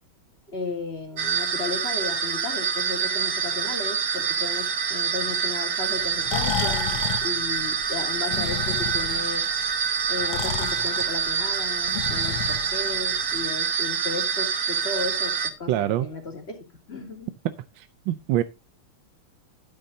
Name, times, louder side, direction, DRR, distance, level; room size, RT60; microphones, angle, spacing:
voice 1, 0.5-9.5 10.1-16.6 16.9-17.3, left 3 dB, 30° left, 2 dB, 2.8 m, -35 dB
sound 1, 1.2-15.5, right 6 dB, 50° right, 1.4 m, -26 dB
Breathing, 6.0-13.4, left 9 dB, 70° left, 1.5 m, -33 dB
voice 2, 15.7-16.1 17.8-18.4, right 13 dB, 70° right, 11 dB, 1.3 m, -25 dB
12.0 x 10.5 x 2.7 m, 0.25 s
omnidirectional pair, 2.4 m